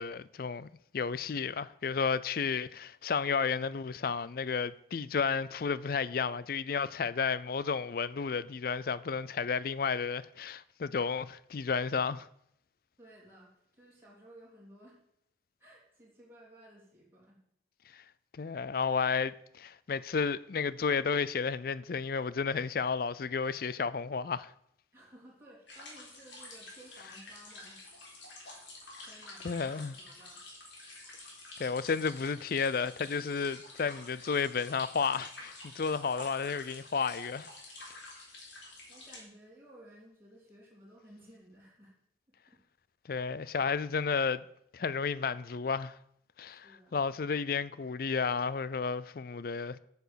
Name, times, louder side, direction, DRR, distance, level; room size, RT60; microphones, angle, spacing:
voice 1, 0.0-12.3 17.9-18.0 18.3-24.5 29.4-30.0 31.6-37.5 37.9-38.0 43.1-44.5 44.7-46.0 46.4-46.7 46.9-49.8, left 5 dB, 50° left, 0.4 m, -32 dB
voice 2, 13.0-15.0 15.6-17.4 24.9-28.0 29.1-30.4 38.9-41.9 42.5-42.6 46.4-47.1, right 1 dB, 10° right, 3.3 m, -56 dB
sound 1, 25.7-39.2, left 2 dB, 80° left, 3.9 m, -49 dB
9.1 x 6.9 x 6.9 m
head